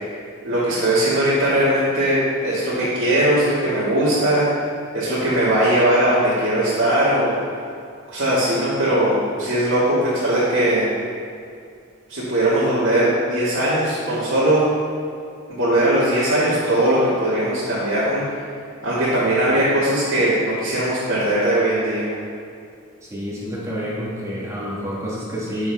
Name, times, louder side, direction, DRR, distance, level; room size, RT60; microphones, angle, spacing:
voice 1, 0.4-4.5 4.9-7.4 8.1-10.9 12.1-14.6 15.5-18.2 18.8-22.1, right 1 dB, 60° right, -11 dB, 2.1 m, -19 dB
voice 2, 23.0-25.7, equal, 15° right, -7 dB, 2.0 m, -28 dB
10.5 x 7.0 x 3.6 m, 2.3 s
head